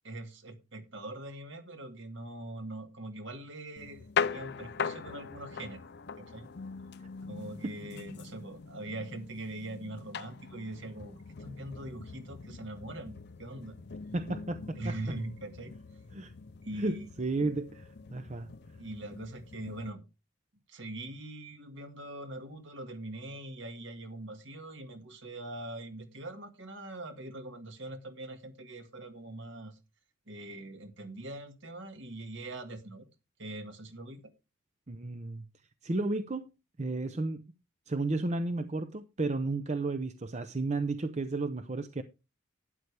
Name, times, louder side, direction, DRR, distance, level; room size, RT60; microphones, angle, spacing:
voice 1, 0.0-5.9 6.2-6.5 7.3-13.8 14.8-15.7 16.6-17.1 18.8-20.0 20.7-29.8 30.3-33.1 33.4-34.3, right 1 dB, 55° right, 1.8 m, -42 dB
sound 1, 3.8-19.9, left 6 dB, 50° left, 0.6 m, -41 dB
voice 2, 14.1-14.9 16.1-16.3 16.7-18.5 34.9-35.4 35.8-36.5 36.8-37.4 37.9-42.0, right 2 dB, 35° right, 0.6 m, -33 dB
12.0 x 9.7 x 3.3 m
head